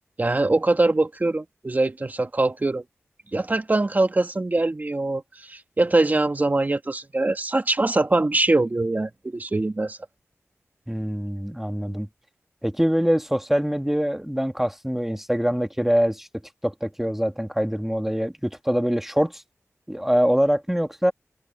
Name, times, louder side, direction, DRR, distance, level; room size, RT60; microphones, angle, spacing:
voice 1, 0.2-2.8 3.3-10.0, right 2 dB, 35° right, 1.8 m, -23 dB
voice 2, 10.9-12.1 12.6-16.3 16.6-19.4 19.9-21.1, equal, 5° right, 1.8 m, -24 dB
wide cardioid pair, 95°, 5 cm